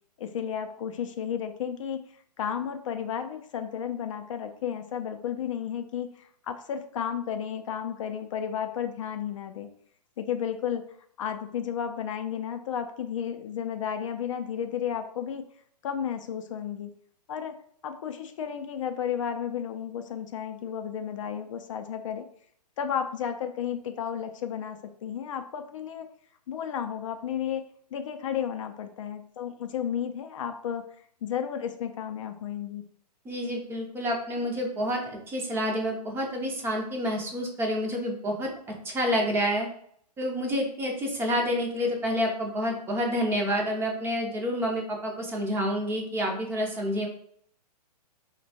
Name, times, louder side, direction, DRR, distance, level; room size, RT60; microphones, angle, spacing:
voice 1, 0.2-2.0 2.4-9.7 10.2-10.8 11.2-15.4 15.8-16.9 17.3-17.5 17.8-22.3 22.8-26.1 26.5-27.6 27.9-30.8 31.2-32.8, left 8 dB, 50° left, 7 dB, 0.4 m, -33 dB
voice 2, 33.3-38.5 38.8-39.7 40.2-47.1, equal, 10° right, 1 dB, 0.5 m, -28 dB
4.2 x 2.1 x 2.7 m, 0.62 s
hypercardioid pair, 125°, 21 cm